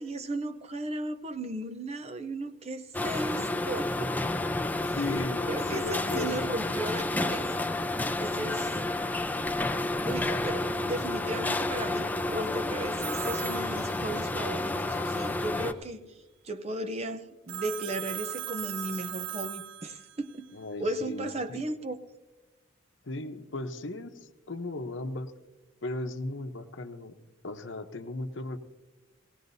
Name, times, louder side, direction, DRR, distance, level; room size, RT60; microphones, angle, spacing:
voice 1, 0.0-4.3 5.5-7.7 8.2-8.8 10.0-16.2 16.4-20.5 20.8-22.0, right 1 dB, 30° right, 10 dB, 0.6 m, -35 dB
sound 1, 2.9-15.7, left 2 dB, 10° left, 0.5 m, -30 dB
voice 2, 4.5-6.5 20.5-21.6 23.0-25.3 25.8-27.1 27.4-28.6, left 2 dB, 65° left, 7 dB, 0.9 m, -37 dB
Telephone, 13.0-14.5 17.5-20.3, right 10 dB, 80° right, 0.4 m, -38 dB
19.0 x 17.0 x 2.7 m, 1.1 s
head